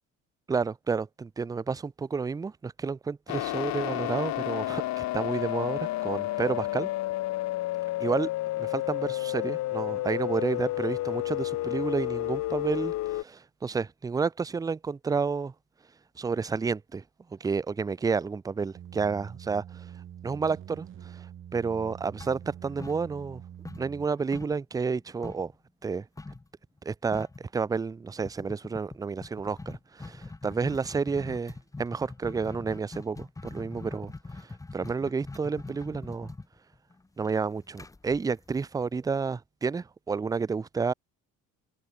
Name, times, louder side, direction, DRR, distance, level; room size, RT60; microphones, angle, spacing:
voice 1, 0.5-6.9 8.0-8.3 8.6-15.5 16.2-17.0 17.3-19.9 20.2-21.3 21.5-23.4 23.8-25.5 25.8-26.1 26.8-36.3 37.2-40.9, right 5 dB, 10° right, 0.5 m, -30 dB
sound 1, 3.3-13.2, left 16 dB, 65° left, 2.0 m, -31 dB
sound 2, 18.7-24.1, right 10 dB, 40° right, 2.1 m, -45 dB
sound 3, 22.2-23.4 23.6-25.5 26.2-26.5 26.8-26.9 27.1-27.5 28.2-39.0, left 3 dB, 10° left, 1.6 m, -43 dB
open air
cardioid pair, 135°, 31 cm